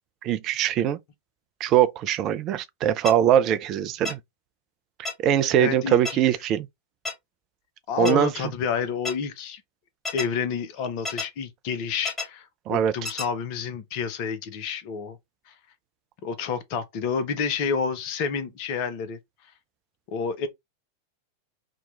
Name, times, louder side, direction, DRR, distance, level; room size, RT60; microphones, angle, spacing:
voice 1, 0.2-1.0 1.6-4.2 5.2-6.7 8.0-8.3 12.7-12.9, right 10 dB, 35° right, 0.4 m, -22 dB
sound 1, 3.1-3.2 4.1-4.2 5.1-5.2 6.1-6.2 7.1-7.2 8.1-8.2 9.1-9.2 10.1-10.3 11.1-11.3 12.1-12.3 13.1-13.3, left 3 dB, 10° left, 1.5 m, -30 dB
voice 2, 5.6-6.0 7.9-9.6 10.1-15.2 15.5-15.6 16.2-19.2 20.1-20.5, left 6 dB, 45° left, 0.7 m, -29 dB
2.9 x 2.3 x 4.0 m
figure-of-eight pair, 90°, 0 cm